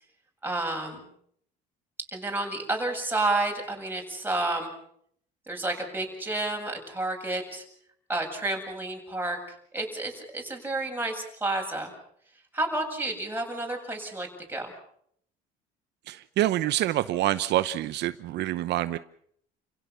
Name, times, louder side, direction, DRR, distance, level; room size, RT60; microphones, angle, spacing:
voice 1, 0.4-1.1 2.1-4.7 5.5-7.6 8.1-9.4 9.7-11.9 12.5-14.7, right 2 dB, 10° right, 1 dB, 7.6 m, -30 dB
voice 2, 16.1-19.0, right 14 dB, 65° right, 13 dB, 0.9 m, -26 dB
30.0 x 16.5 x 7.0 m, 0.67 s
cardioid pair, 105°, 19 cm